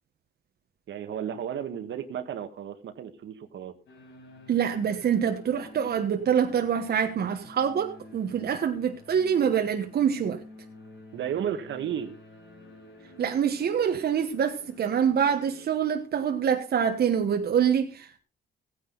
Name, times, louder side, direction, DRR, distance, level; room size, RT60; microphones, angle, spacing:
voice 1, 0.9-3.7 11.1-12.1, right 9 dB, 70° right, 1.6 m, -33 dB
sound 1, 3.9-15.7, left 2 dB, 85° left, 5.0 m, -50 dB
voice 2, 4.5-10.4 13.2-18.2, right 8 dB, 55° right, 1.2 m, -25 dB
15.5 x 9.7 x 4.0 m
cardioid pair, 90°, 20 cm